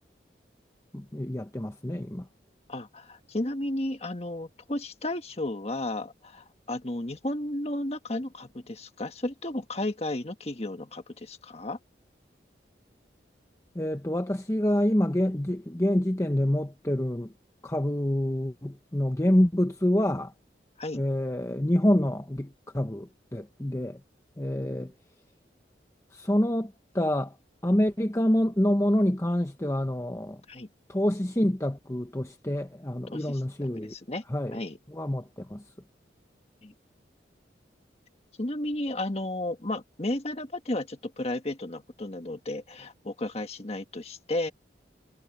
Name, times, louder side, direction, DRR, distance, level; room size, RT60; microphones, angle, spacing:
voice 1, 0.9-2.3 13.7-17.3 17.6-20.3 20.9-24.0 24.4-24.9 26.1-27.3 27.6-30.4 30.9-33.9 34.3-34.6 34.9-35.6, left 1 dB, 15° left, 0.9 m, -27 dB
voice 2, 2.7-11.8 20.8-21.0 30.5-30.7 33.1-33.4 33.9-34.2 34.5-34.8 36.6-36.7 38.4-44.5, left 1 dB, 35° left, 1.6 m, -33 dB
head